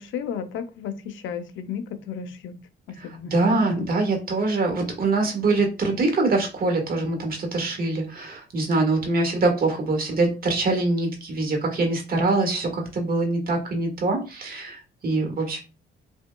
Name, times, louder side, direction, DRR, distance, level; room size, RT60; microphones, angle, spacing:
voice 1, 0.0-2.5 2.9-3.9, left 8 dB, 80° left, 9 dB, 0.6 m, -33 dB
voice 2, 3.0-15.6, right 3 dB, 45° right, 4 dB, 1.4 m, -24 dB
5.5 x 2.6 x 2.3 m, 0.32 s
cardioid pair, 90°, 20 cm